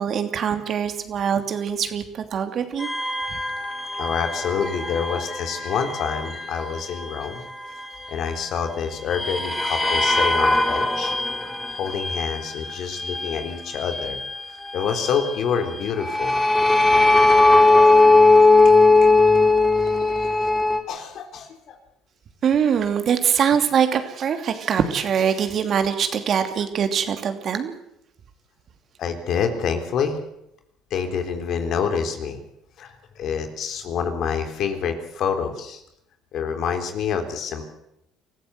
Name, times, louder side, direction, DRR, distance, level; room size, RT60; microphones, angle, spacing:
voice 1, 0.0-2.9 4.8-5.0 22.4-27.8, right 7 dB, 50° right, 7 dB, 2.8 m, -23 dB
sound 1, 2.8-8.7 9.1-20.8, left 2 dB, 10° left, 3.5 m, -20 dB
voice 2, 3.9-7.4 8.1-11.1 11.8-14.2 14.7-16.8 18.6-18.7 19.0-19.2 19.8-20.5 20.9-21.8 29.0-30.2 30.9-32.4 32.8-35.8 36.3-37.6, left 6 dB, 60° left, 6 dB, 3.6 m, -27 dB
24.0 x 15.0 x 8.1 m, 0.81 s
supercardioid pair, 75°, 0 cm